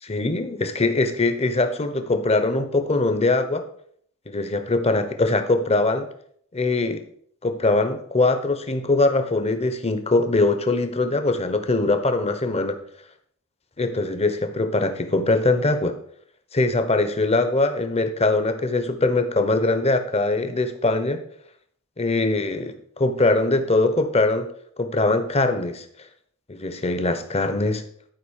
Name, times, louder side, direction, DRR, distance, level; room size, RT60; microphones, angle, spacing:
voice 1, 0.1-3.6 4.3-6.1 6.5-7.0 7.4-12.8 13.8-15.9 16.5-21.2 22.0-24.5 24.8-25.9 26.5-27.8, left 2 dB, 30° left, 8 dB, 1.1 m, -22 dB
12.0 x 5.0 x 6.6 m, 0.62 s
head